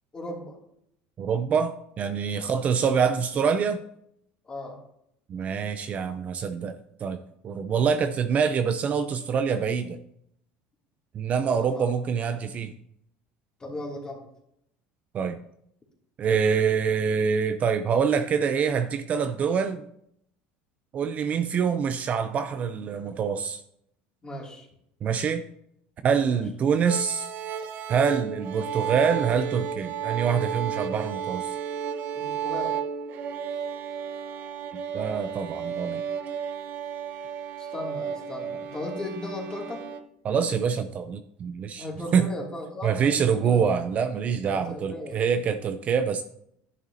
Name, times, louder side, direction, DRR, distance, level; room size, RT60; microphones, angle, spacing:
voice 1, 0.1-0.6 2.4-2.5 4.4-4.8 11.4-11.9 13.6-14.2 24.2-24.7 26.2-26.4 32.1-32.8 37.6-39.8 41.8-43.6 44.4-45.2, left 1 dB, 20° left, -1 dB, 2.6 m, -37 dB
voice 2, 1.2-3.8 5.3-6.7 7.0-7.2 7.4-10.0 11.1-12.7 15.1-15.4 16.2-19.9 20.9-23.6 25.0-25.4 26.0-27.3 27.9-31.5 34.9-36.0 40.2-41.9 42.1-42.3 42.8-46.2, right 6 dB, 35° right, 9 dB, 0.5 m, -25 dB
sound 1, 26.9-40.0, right 8 dB, 50° right, 0.9 m, -33 dB
10.5 x 10.0 x 2.8 m, 0.74 s
cardioid pair, 130°, 4 cm